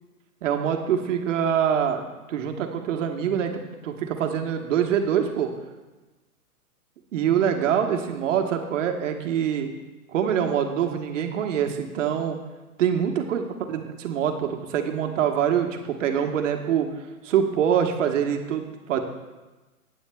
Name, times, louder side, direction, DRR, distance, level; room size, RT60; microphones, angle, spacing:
voice 1, 0.4-2.0 2.3-5.5 7.1-9.7 10.1-12.4 12.8-16.9 17.2-19.0, right 8 dB, 55° right, 4 dB, 1.2 m, -24 dB
14.0 x 8.8 x 2.3 m, 1.2 s
hypercardioid pair, 140°, 44 cm